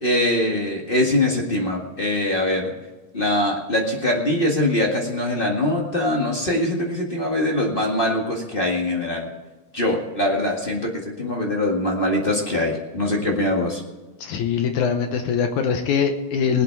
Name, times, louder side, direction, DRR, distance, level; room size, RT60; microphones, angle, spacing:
voice 1, 0.0-2.7 3.1-9.3 9.7-13.8, left 1 dB, 30° left, -1 dB, 1.0 m, -22 dB
voice 2, 14.2-16.6, left 6 dB, 70° left, 6 dB, 2.0 m, -22 dB
20.5 x 8.5 x 4.7 m, 1.2 s
omnidirectional pair, 4.0 m